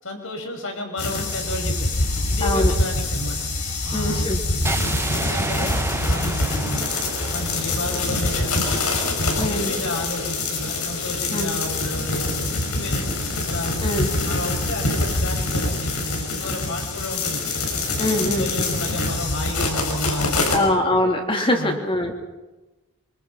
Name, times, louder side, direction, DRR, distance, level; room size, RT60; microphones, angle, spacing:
voice 1, 0.0-1.9 2.2-3.4 3.8-4.6 5.1-5.7 6.1-6.9 7.3-8.8 9.2-17.5 18.2-20.7 21.6-21.8, left 1 dB, 60° left, 3 dB, 6.0 m, -32 dB
sound 1, 1.0-20.6, left 2 dB, 85° left, 6.6 m, -25 dB
voice 2, 2.4-2.7 3.9-4.4 9.4-9.7 11.3-11.5 13.8-14.1 18.0-18.5 20.5-22.1, left 1 dB, 25° left, 3 dB, 3.4 m, -22 dB
sound 2, 4.6-8.7, right 2 dB, 10° right, 0.9 m, -30 dB
26.0 x 25.5 x 5.9 m, 1.1 s
head